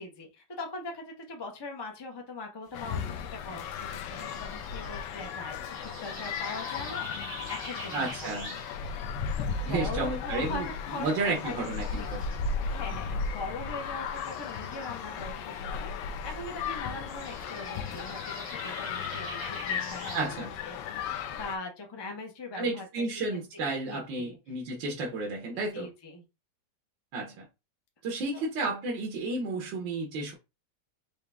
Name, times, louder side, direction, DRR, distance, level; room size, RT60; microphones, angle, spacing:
voice 1, 0.0-8.4 9.4-11.7 11.9-23.0 23.5-24.4 25.5-26.2 28.3-28.4, left 2 dB, 25° left, 0.6 m, -41 dB
sound 1, 2.6-20.4, right 2 dB, 15° right, 1.1 m, -48 dB
sound 2, 2.7-21.6, left 6 dB, 75° left, 1.2 m, -35 dB
voice 2, 7.9-8.6 9.6-10.7 11.0-12.2 20.1-20.6 22.6-25.9 27.1-27.5 28.0-30.3, right 3 dB, 80° right, 1.6 m, -32 dB
4.6 x 2.4 x 3.3 m
omnidirectional pair, 2.0 m